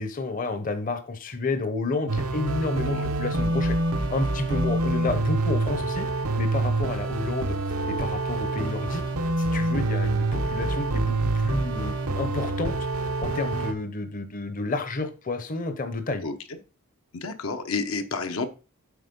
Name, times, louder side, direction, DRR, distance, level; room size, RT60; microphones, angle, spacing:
voice 1, 0.0-3.8 4.1-6.1 6.4-7.6 7.9-9.0 9.4-12.8 13.2-16.3, left 2 dB, 40° left, 10 dB, 0.8 m, -30 dB
sound 1, 2.1-13.7, right 2 dB, 85° right, 0.9 m, -26 dB
voice 2, 17.1-18.5, left 4 dB, 80° left, 7 dB, 1.0 m, -30 dB
8.2 x 4.3 x 5.2 m, 0.34 s
head